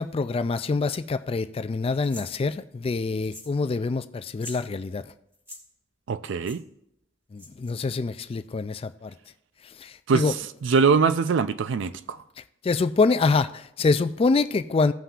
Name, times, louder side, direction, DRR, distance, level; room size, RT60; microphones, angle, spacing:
voice 1, 0.0-5.0 7.3-9.1 9.8-10.3 12.6-14.9, left 4 dB, 30° left, 0.3 m, -25 dB
sound 1, 2.0-2.3 3.2-3.6 3.8-3.9 4.3-4.6 5.3-5.6 6.4-6.6 7.4-7.7, left 1 dB, 10° right, 2.4 m, -43 dB
voice 2, 6.1-6.6 10.1-12.2, right 5 dB, 65° right, 0.4 m, -23 dB
17.0 x 5.6 x 2.5 m
head